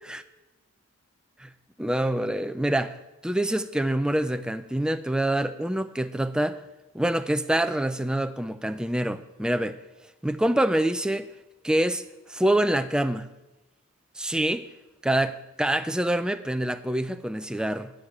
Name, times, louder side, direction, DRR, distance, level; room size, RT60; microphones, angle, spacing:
voice 1, 1.8-3.0 3.2-6.6 6.9-9.8 10.2-11.3 11.6-12.0 12.3-13.3 14.2-14.6 15.0-17.9, right 1 dB, 5° right, 0.4 m, -26 dB
10.0 x 6.4 x 8.5 m
head